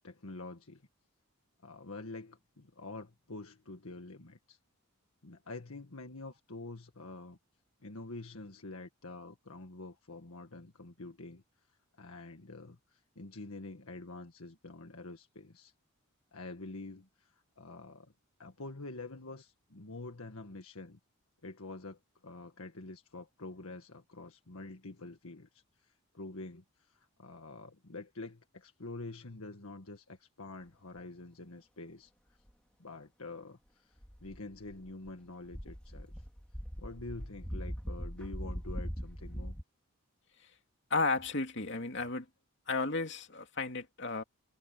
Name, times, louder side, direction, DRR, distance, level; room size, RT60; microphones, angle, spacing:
voice 1, 0.0-0.8 1.6-4.6 5.2-7.4 7.8-11.4 12.0-15.7 16.3-18.1 18.4-21.0 21.4-32.1 32.8-36.1 36.8-39.6, left 2 dB, 75° left, 1.7 m, -47 dB
sound 1, 34.0-35.1 35.5-39.6, equal, 5° left, 2.8 m, -41 dB
voice 2, 40.9-42.3 42.7-44.2, left 3 dB, 55° left, 2.7 m, -33 dB
head